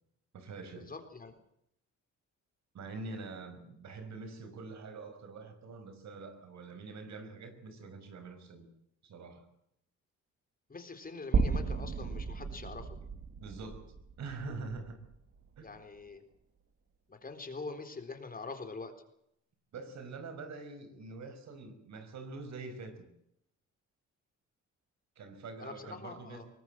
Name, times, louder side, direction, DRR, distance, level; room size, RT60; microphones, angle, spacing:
voice 1, 0.3-0.9 2.7-8.7 9.0-9.5 13.4-15.1 15.6-15.7 19.7-23.1 25.2-26.4, right 3 dB, 65° right, 9 dB, 5.2 m, -45 dB
voice 2, 0.9-1.4 10.7-13.0 15.6-16.2 17.1-18.9 25.6-26.4, left 3 dB, 30° left, 7 dB, 4.0 m, -44 dB
sound 1, 11.3-15.6, right 5 dB, 50° right, 2.2 m, -34 dB
22.5 x 19.0 x 7.6 m, 0.76 s
cardioid pair, 90°, 30 cm